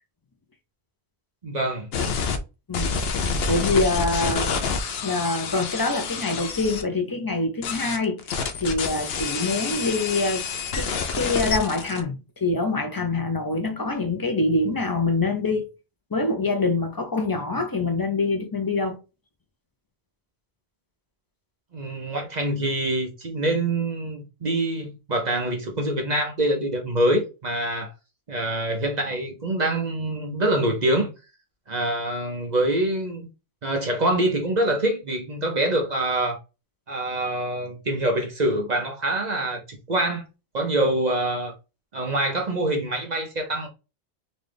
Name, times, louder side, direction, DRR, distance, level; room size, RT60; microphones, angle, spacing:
voice 1, 1.4-1.9 21.7-27.9 28.3-31.1 31.7-33.3 33.6-36.4 36.9-40.2 40.5-41.5 41.9-43.7, right 1 dB, 45° right, 0.8 m, -25 dB
sound 1, 1.9-2.4 2.7-6.8 7.6-12.0, left 5 dB, 70° left, 0.8 m, -28 dB
voice 2, 3.5-4.5 5.0-8.2 8.6-10.4 10.7-15.7 16.1-19.0, left 3 dB, 25° left, 0.5 m, -25 dB
4.0 x 2.4 x 3.3 m
omnidirectional pair, 1.1 m